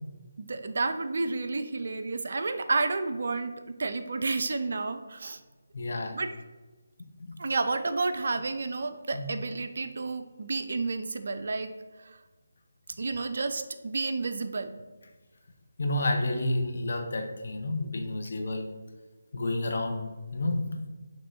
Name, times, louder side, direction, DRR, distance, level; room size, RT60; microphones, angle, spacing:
voice 1, 0.4-5.4 6.1-6.3 7.4-11.7 12.0-12.2 13.0-14.8, right 3 dB, 55° right, 9 dB, 0.4 m, -31 dB
voice 2, 5.7-6.2 7.2-7.3 9.1-9.3 15.8-18.7 19.3-20.9, left 2 dB, 55° left, 3 dB, 0.7 m, -30 dB
6.0 x 3.0 x 2.7 m, 1.2 s
figure-of-eight pair, 155°, 0 cm